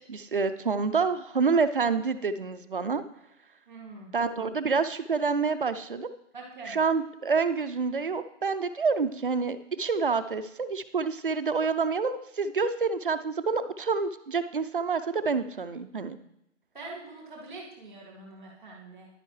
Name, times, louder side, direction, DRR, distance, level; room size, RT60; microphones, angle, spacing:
voice 1, 0.1-3.0 4.1-6.1 6.6-16.2, right 5 dB, 45° right, 10 dB, 0.5 m, -27 dB
voice 2, 3.7-4.1 6.3-6.7 16.7-19.1, right 3 dB, 5° left, -14 dB, 0.9 m, -44 dB
10.5 x 9.0 x 3.2 m, 0.79 s
hypercardioid pair, 180°, 36 cm